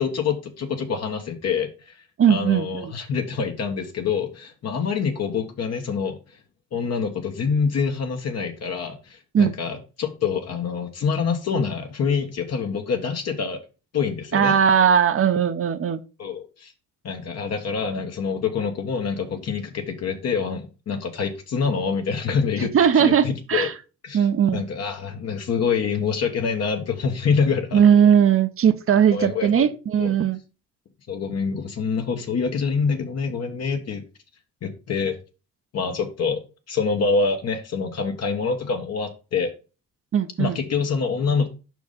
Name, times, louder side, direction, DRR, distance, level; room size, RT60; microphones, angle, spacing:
voice 1, 0.0-1.9 2.3-6.2 6.7-13.6 13.9-14.6 16.2-16.7 17.0-23.7 24.0-24.3 24.5-27.8 29.1-29.7 30.0-30.1 31.1-34.0 34.6-35.1 35.7-36.4 36.7-39.5 40.4-41.5, left 5 dB, 55° left, 1.2 m, -26 dB
voice 2, 2.2-2.9 9.3-9.5 14.3-16.0 22.6-23.7 24.1-24.6 27.7-30.4 40.1-40.6, right 8 dB, 45° right, 0.8 m, -19 dB
5.3 x 4.6 x 5.1 m
cardioid pair, 90°, 30 cm